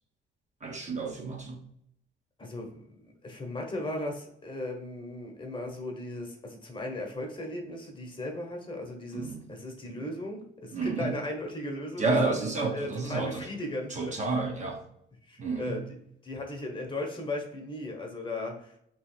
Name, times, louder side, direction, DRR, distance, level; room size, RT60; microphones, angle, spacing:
voice 1, 0.6-1.6 9.1-9.4 10.7-11.1 12.0-13.4 13.9-14.8 15.4-15.8, right 3 dB, 35° right, 1 dB, 0.8 m, -30 dB
voice 2, 2.4-14.1 15.3-16.0 16.2-18.8, left 1 dB, 25° left, 2 dB, 1.0 m, -37 dB
3.0 x 2.6 x 4.3 m, 0.72 s
cardioid pair, 90°, 20 cm